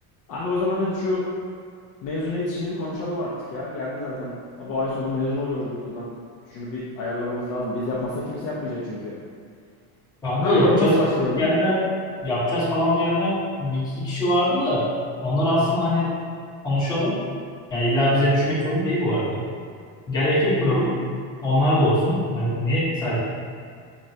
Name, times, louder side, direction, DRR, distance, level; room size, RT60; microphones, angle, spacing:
voice 1, 0.3-1.2 2.0-6.1 6.5-9.1 10.4-11.5, left 2 dB, 40° left, -7 dB, 0.4 m, -27 dB
voice 2, 10.2-10.9 11.4-11.7 12.2-14.9 15.2-16.2 16.6-17.2 17.7-19.4 20.1-20.9 21.4-23.2, left 1 dB, 10° left, -10 dB, 0.7 m, -22 dB
5.9 x 2.1 x 2.6 m, 2.2 s
cardioid pair, 180°, 43 cm